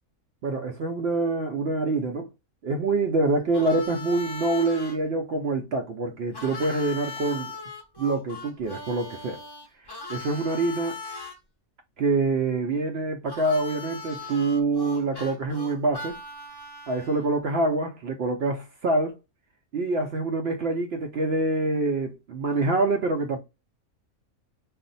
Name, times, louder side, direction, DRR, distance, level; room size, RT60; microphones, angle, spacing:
voice 1, 0.4-2.3 2.6-7.5 8.0-9.4 9.8-11.0 12.0-16.2 16.9-19.2 19.7-23.4, right 2 dB, 70° right, 0.6 m, -26 dB
Harmonica, 3.5-5.0 6.3-11.4 13.3-17.2, left 3 dB, 25° left, 0.5 m, -39 dB
2.5 x 2.1 x 3.8 m
omnidirectional pair, 1.5 m